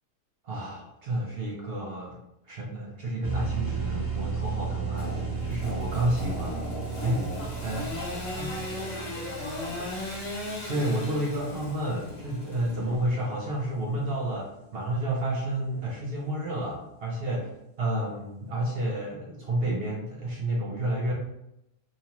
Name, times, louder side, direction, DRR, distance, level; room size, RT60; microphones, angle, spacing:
voice 1, 0.4-2.2 2.4-5.1 5.4-6.6 7.0-7.4 7.6-7.9 8.4-8.5 10.7-17.5 17.8-21.1, right 1 dB, 60° right, -2 dB, 0.6 m, -30 dB
sound 1, 3.2-12.7, right 5 dB, 20° right, 0.7 m, -35 dB
Engine / Sawing, 5.0-13.2, left 1 dB, 80° left, 1.3 m, -37 dB
voice 2, 7.9-10.0, left 2 dB, 65° left, -5 dB, 0.4 m, -42 dB
2.7 x 2.4 x 2.8 m, 0.86 s
omnidirectional pair, 1.4 m